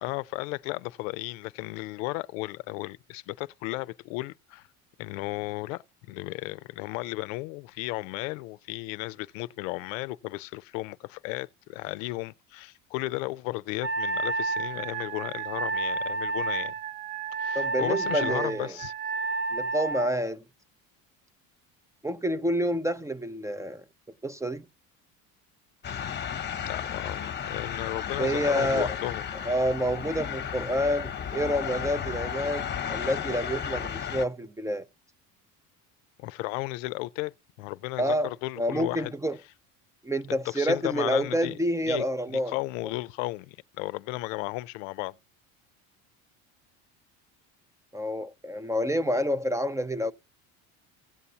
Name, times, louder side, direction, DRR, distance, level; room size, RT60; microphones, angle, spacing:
voice 1, 0.0-4.7 5.0-16.7 17.3-18.9 26.6-29.3 36.2-39.1 40.5-41.6 41.9-45.2, left 20 dB, 90° left, 0.5 m, -34 dB
Wind instrument woodwind instrument, 13.8-20.2, right 3 dB, 70° right, 1.0 m, -31 dB
voice 2, 17.5-18.8 19.5-20.4 22.0-23.8 24.2-24.6 28.2-28.9 29.5-34.8 38.0-38.3 38.6-39.4 40.0-42.5 47.9-50.1, equal, 10° right, 0.4 m, -28 dB
sound 1, 25.8-34.2, left 8 dB, 25° left, 1.0 m, -33 dB
16.5 x 7.0 x 2.8 m
supercardioid pair, 105°, 38 cm